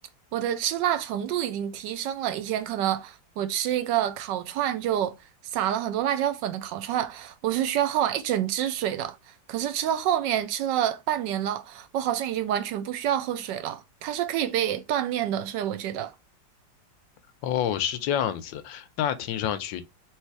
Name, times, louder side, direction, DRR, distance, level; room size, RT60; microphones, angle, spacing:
voice 1, 0.3-5.1 5.5-9.2 9.5-16.1, right 11 dB, 75° right, 1.2 m, -27 dB
voice 2, 17.4-19.8, left 10 dB, 80° left, 1.3 m, -28 dB
3.2 x 3.1 x 4.6 m
omnidirectional pair, 2.0 m